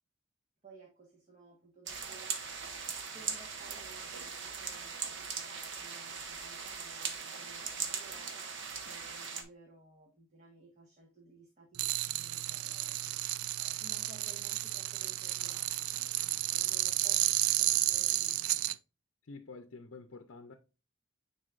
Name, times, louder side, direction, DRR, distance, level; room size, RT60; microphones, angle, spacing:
voice 1, 0.6-2.7 3.1-18.6, right 3 dB, 35° right, 1.4 m, -57 dB
sound 1, 1.9-9.4, right 6 dB, 55° right, 1.1 m, -40 dB
sound 2, 11.8-18.7, right 14 dB, 90° right, 0.4 m, -32 dB
voice 2, 19.2-20.5, left 3 dB, 60° left, 0.6 m, -48 dB
9.4 x 4.1 x 2.5 m
head